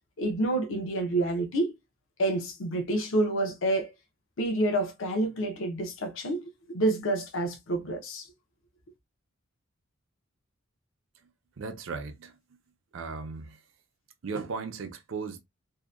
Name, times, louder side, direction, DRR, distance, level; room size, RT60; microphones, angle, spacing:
voice 1, 0.2-1.7 2.2-3.9 4.4-8.3, right 1 dB, 65° left, 0.6 m, -28 dB
voice 2, 11.6-12.3 12.9-13.6 14.2-15.4, right 4 dB, 65° right, 0.5 m, -36 dB
2.7 x 2.1 x 2.3 m
head